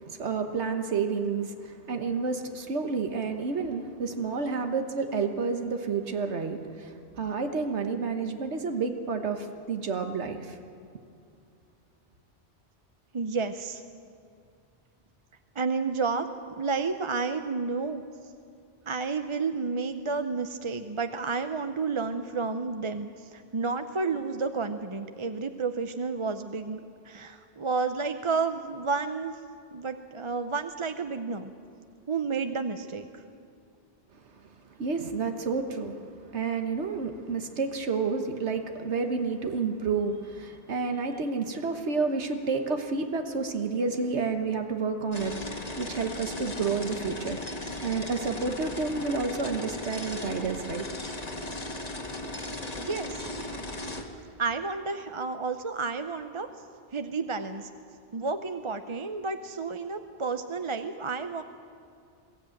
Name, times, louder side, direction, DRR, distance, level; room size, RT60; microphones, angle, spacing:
voice 1, 0.0-10.6 34.8-45.4 45.8-47.4 47.8-50.9, right 4 dB, 90° right, 6 dB, 1.5 m, -30 dB
voice 2, 13.1-13.8 15.5-16.3 16.6-18.0 18.9-26.8 27.0-29.4 29.7-31.5 32.1-33.1 52.7-53.3 54.4-56.5 56.9-57.7 58.1-61.4, right 4 dB, 35° right, 8 dB, 0.6 m, -31 dB
sound 1, 45.1-54.0, left 1 dB, 35° left, 1.8 m, -37 dB
22.0 x 15.0 x 9.1 m, 2.4 s
omnidirectional pair, 1.1 m